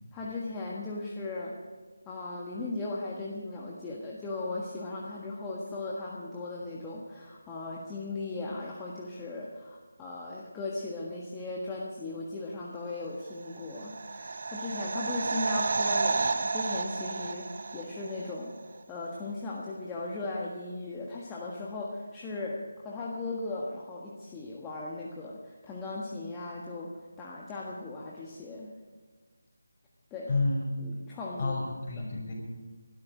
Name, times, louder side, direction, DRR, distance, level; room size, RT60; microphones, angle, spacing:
voice 1, 0.1-1.6 2.0-18.6 18.9-28.7 30.1-30.3 30.8-31.5 31.9-32.0, left 2 dB, 10° left, -4 dB, 1.4 m, -37 dB
sound 1, 13.5-18.3 18.6-18.7, right 4 dB, 50° right, 0.8 m, -31 dB
voice 2, 30.3-30.6 31.4-32.3, left 3 dB, 35° left, -3 dB, 6.1 m, -29 dB
19.5 x 12.5 x 5.0 m, 1.4 s
figure-of-eight pair, 160°, 0 cm